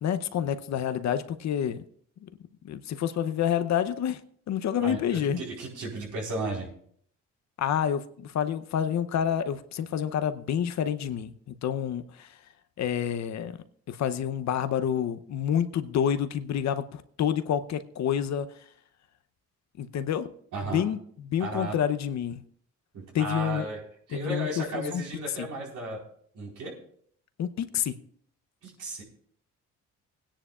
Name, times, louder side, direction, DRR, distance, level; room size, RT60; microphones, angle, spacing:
voice 1, 0.0-1.8 2.2-2.3 2.6-4.2 4.5-5.4 7.6-12.3 12.8-13.6 13.9-18.5 19.8-20.3 20.6-21.0 21.3-22.4 23.1-23.6 24.1-25.0 25.4-25.5 27.4-28.0, left 9 dB, 65° left, 0.8 m, -28 dB
voice 2, 4.8-6.7 20.5-20.9 21.4-21.8 22.9-23.8 24.1-26.0 26.3-26.7 28.6-29.0, right 2 dB, 75° right, 4.4 m, -34 dB
20.5 x 10.0 x 2.4 m
cardioid pair, 90°, 30 cm